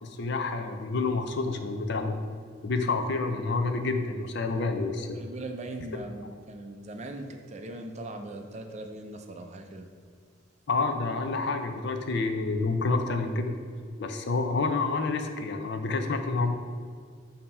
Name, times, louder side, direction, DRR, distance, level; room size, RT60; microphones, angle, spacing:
voice 1, 0.0-2.2 2.6-5.2 10.7-13.5 14.0-16.5, left 3 dB, 60° left, 6 dB, 0.5 m, -28 dB
voice 2, 5.1-9.9, right 2 dB, 35° right, 5 dB, 0.5 m, -40 dB
7.3 x 2.9 x 5.4 m, 2.1 s
head